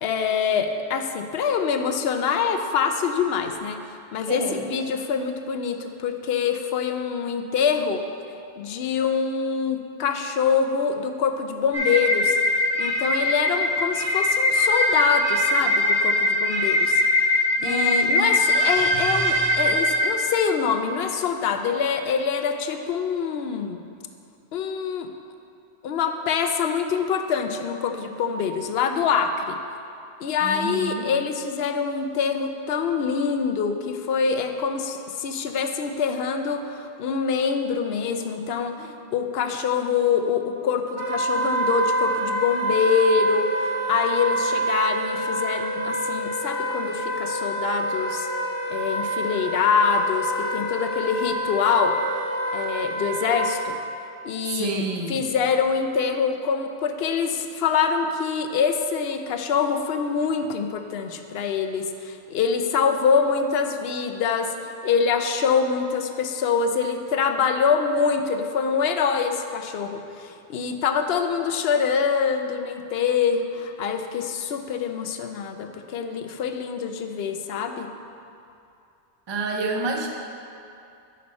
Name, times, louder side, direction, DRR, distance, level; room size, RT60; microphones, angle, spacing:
voice 1, 0.0-8.0 8.6-12.4 12.8-17.0 17.6-23.8 24.5-25.1 25.8-29.6 30.2-48.3 48.7-51.9 52.5-53.8 54.2-77.9, left 6 dB, 70° left, 7 dB, 0.8 m, -25 dB
voice 2, 4.3-4.6 17.6-18.4 30.4-31.1 54.5-55.3 79.3-80.1, right 3 dB, 30° right, 1 dB, 0.6 m, -29 dB
sound 1, 11.7-20.1, left 1 dB, 45° right, 2.1 m, -21 dB
Wind instrument woodwind instrument, 41.0-53.6, right 1 dB, 70° right, 1.2 m, -27 dB
9.4 x 5.7 x 4.2 m, 2.7 s
omnidirectional pair, 1.1 m